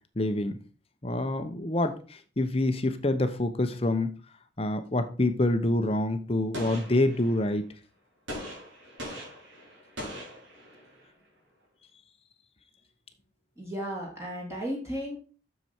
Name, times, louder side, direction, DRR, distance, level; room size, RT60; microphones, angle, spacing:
voice 1, 0.2-0.6 1.0-4.1 4.6-7.7, left 1 dB, 30° left, 8 dB, 0.8 m, -26 dB
Gunshot gunfire, 6.5-7.6 8.3-11.1, equal, 75° right, 3.8 m, -41 dB
voice 2, 13.6-15.2, equal, 15° right, -3 dB, 2.5 m, -34 dB
7.7 x 6.8 x 4.4 m, 0.36 s
head